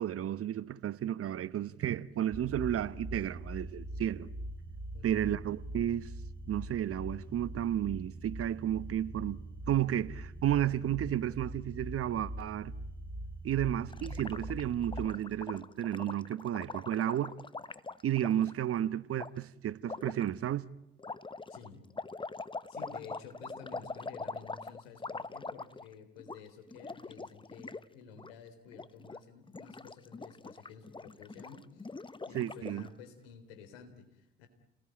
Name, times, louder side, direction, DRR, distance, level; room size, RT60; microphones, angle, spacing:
voice 1, 0.0-4.3 5.0-6.1 6.5-9.4 9.7-12.7 13.4-17.3 18.0-20.7 32.3-32.8, right 11 dB, 50° right, 1.1 m, -32 dB
sound 1, 2.3-15.1, right 1 dB, 15° right, 3.9 m, -43 dB
voice 2, 4.9-5.4 21.5-21.8 22.7-31.9 32.2-34.5, left 6 dB, 80° left, 3.7 m, -52 dB
Gurgling, 13.9-18.5 19.2-19.3 19.8-20.2 21.0-25.9 26.2-26.4 26.7-27.8 28.1-28.3 28.7-29.2 29.5-32.9, left 3 dB, 15° left, 1.1 m, -43 dB
30.0 x 19.0 x 9.0 m
hypercardioid pair, 50°, 29 cm